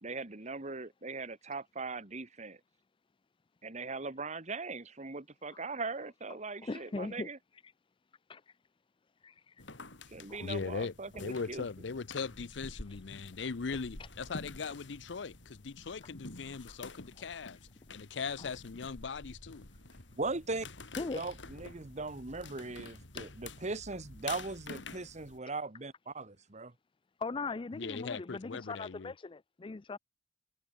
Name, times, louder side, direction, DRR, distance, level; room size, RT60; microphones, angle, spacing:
voice 1, 0.0-2.6 3.6-7.4 10.1-11.6 20.1-20.7 21.1-26.7, right 3 dB, 40° right, 1.7 m, -39 dB
voice 2, 6.6-7.3 8.3-8.4 9.2-9.3 10.3-10.4 16.7-16.8 18.4-18.5 21.0-21.2 27.2-30.0, left 3 dB, 30° left, 0.5 m, -39 dB
sound 1, 9.6-25.4, left 3 dB, 90° left, 3.8 m, -49 dB
voice 3, 10.4-10.9 11.2-17.6 17.9-19.7 27.7-29.1, left 5 dB, 70° left, 0.6 m, -39 dB
head